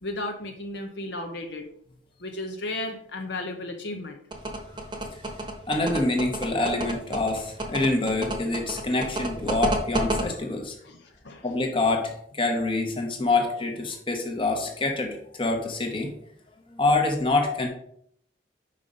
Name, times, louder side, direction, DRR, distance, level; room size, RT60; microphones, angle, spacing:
voice 1, 0.0-1.7 2.2-4.2 10.8-11.5, left 2 dB, 60° left, 3 dB, 0.8 m, -34 dB
sound 1, 4.3-10.2, right 1 dB, 25° right, 1.0 m, -29 dB
voice 2, 5.7-10.7 11.4-16.1 16.7-17.7, left 2 dB, 25° left, 3 dB, 1.1 m, -26 dB
5.4 x 5.1 x 5.4 m, 0.68 s
head